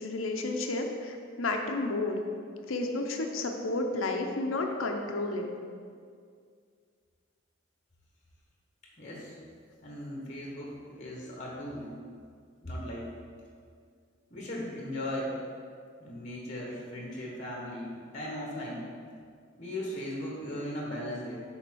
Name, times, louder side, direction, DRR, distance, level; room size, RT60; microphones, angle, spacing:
voice 1, 0.0-2.2 2.7-5.5, left 2 dB, 85° left, 3 dB, 0.7 m, -31 dB
voice 2, 9.0-9.4 9.8-12.0 12.6-13.1 14.3-15.4 16.0-18.9 19.6-21.4, left 1 dB, 35° left, -3 dB, 1.3 m, -37 dB
6.8 x 4.0 x 6.2 m, 2.1 s
head